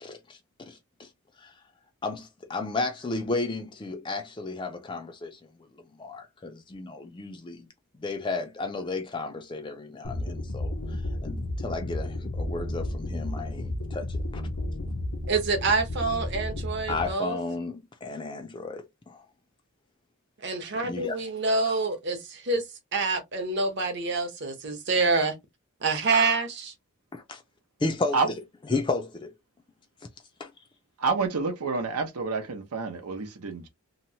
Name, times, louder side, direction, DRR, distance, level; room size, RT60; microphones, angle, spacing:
voice 1, 0.0-1.1 1.4-1.5 2.0-5.4 5.9-7.7 7.9-14.4 16.9-19.2 20.8-21.2 27.1-27.4 27.8-28.2 28.7-29.3 30.4-30.5, left 3 dB, 20° left, 0.3 m, -33 dB
sound 1, 10.0-17.1, left 1 dB, 85° left, 0.6 m, -33 dB
voice 2, 15.3-17.4 20.4-22.6 22.9-25.3 25.8-26.7, right 3 dB, 50° right, 0.8 m, -26 dB
voice 3, 31.0-33.7, right 4 dB, 90° right, 0.8 m, -28 dB
2.9 x 2.1 x 2.7 m
head